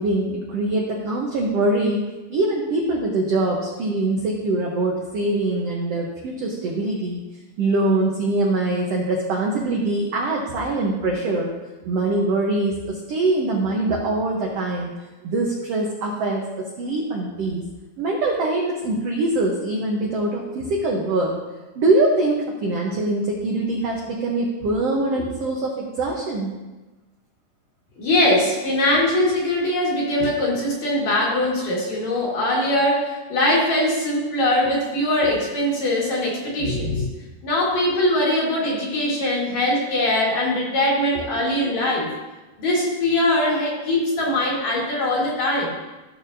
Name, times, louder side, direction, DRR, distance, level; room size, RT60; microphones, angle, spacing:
voice 1, 0.0-2.0 2.3-7.2 7.6-11.5 11.8-14.9 15.2-17.6 18.0-21.4 21.7-26.5 41.6-41.7, right 2 dB, 75° right, -2 dB, 1.4 m, -23 dB
voice 2, 28.0-37.1 37.4-42.1 42.6-45.7, left 1 dB, 55° left, -4 dB, 2.8 m, -21 dB
14.5 x 6.5 x 2.7 m, 1.2 s
omnidirectional pair, 4.2 m